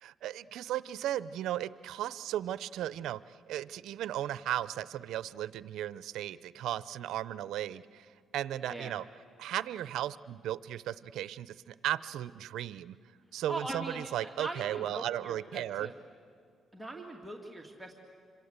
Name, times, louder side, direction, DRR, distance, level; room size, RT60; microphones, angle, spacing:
voice 1, 0.0-3.2 3.5-8.1 8.3-9.0 9.4-12.9 13.3-15.9, right 12 dB, 80° right, 16 dB, 0.6 m, -36 dB
voice 2, 13.5-15.9 16.7-17.9, right 1 dB, 5° right, 0 dB, 2.3 m, -41 dB
27.5 x 25.5 x 8.2 m, 2.3 s
cardioid pair, 90°, 0 cm